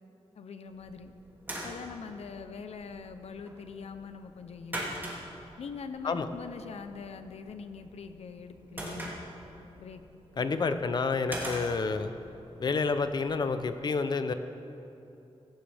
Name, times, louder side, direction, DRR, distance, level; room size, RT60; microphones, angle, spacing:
voice 1, 0.3-1.1 1.5-5.1 5.6-9.1 9.8-10.0, left 5 dB, 80° left, 8 dB, 0.8 m, -43 dB
sound 1, 0.7-13.7, right 1 dB, 20° right, 2.6 m, -44 dB
voice 2, 10.4-12.1 12.6-14.3, left 4 dB, 40° left, 9 dB, 0.7 m, -29 dB
17.5 x 17.0 x 3.5 m, 2.8 s
wide cardioid pair, 175°, 11 cm